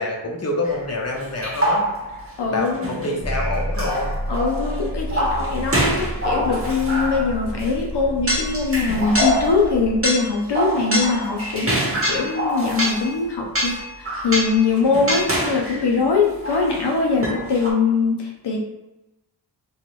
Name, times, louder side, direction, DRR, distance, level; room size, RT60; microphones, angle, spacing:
voice 1, 0.0-1.8 2.5-4.1, left 2 dB, 35° left, -1 dB, 0.8 m, -26 dB
sound 1, 0.6-0.8 1.4-2.3 2.7-7.7 8.0-13.2 13.6-15.9 16.4-16.9 17.2-17.7, equal, 30° right, 1.0 m, -25 dB
voice 2, 2.4-2.9 4.3-18.6, left 4 dB, 70° left, -1 dB, 0.7 m, -22 dB
sound 2, 3.2-10.1, equal, 15° right, 0.6 m, -30 dB
3.1 x 3.1 x 3.0 m, 0.98 s
wide cardioid pair, 115°, 42 cm